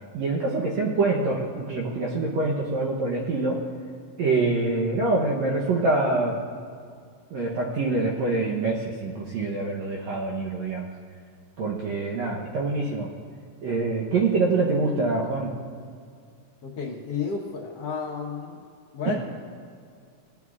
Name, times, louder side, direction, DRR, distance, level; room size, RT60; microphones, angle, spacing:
voice 1, 0.1-3.7 4.2-6.4 7.3-10.9 11.6-13.1 13.6-15.6 19.0-19.2, right 3 dB, 75° right, -2 dB, 1.7 m, -25 dB
voice 2, 16.6-18.6 18.9-19.2, left 5 dB, 70° left, -4 dB, 1.4 m, -31 dB
19.5 x 9.4 x 2.4 m, 2.3 s
omnidirectional pair, 4.1 m